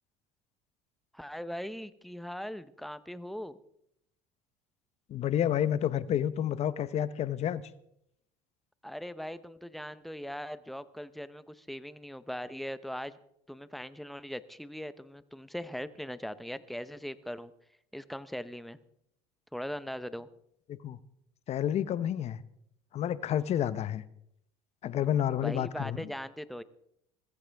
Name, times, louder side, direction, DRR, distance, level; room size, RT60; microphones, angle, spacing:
voice 1, 1.1-3.6 8.8-13.2 13.5-17.5 17.9-18.8 19.5-20.3 25.4-26.6, equal, ahead, 0.8 m, -40 dB
voice 2, 5.1-7.6 20.8-21.0 21.5-22.4 22.9-24.0 24.8-26.1, left 10 dB, 45° left, 0.8 m, -29 dB
21.0 x 14.5 x 3.5 m
supercardioid pair, 110°, 15 cm